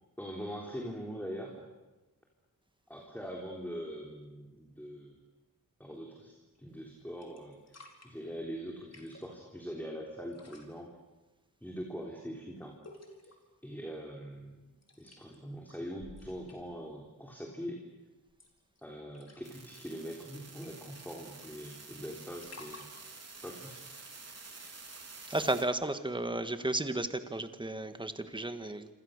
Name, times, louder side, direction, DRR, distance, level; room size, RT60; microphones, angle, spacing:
voice 1, 0.2-1.7 2.9-5.2 5.8-10.9 11.6-12.8 13.2-13.3 13.6-17.8 18.8-22.9 23.4-23.8, equal, 5° left, 0 dB, 3.6 m, -43 dB
sound 1, 6.5-6.9 7.2-8.1 8.8-9.3 10.2-10.7 12.8-13.5 14.8-15.4 15.7-16.8 18.3-18.8 19.1-19.8 20.2-20.3 20.5-21.7 22.1-23.1 23.6-25.0 26.0-26.1, left 2 dB, 45° left, 4.4 m, -54 dB
sound 2, 19.4-25.6, right 4 dB, 45° right, 3.4 m, -50 dB
voice 2, 25.3-28.9, right 2 dB, 15° right, 9 dB, 1.6 m, -33 dB
27.5 x 26.5 x 6.7 m, 1.1 s
wide cardioid pair, 100°, 34 cm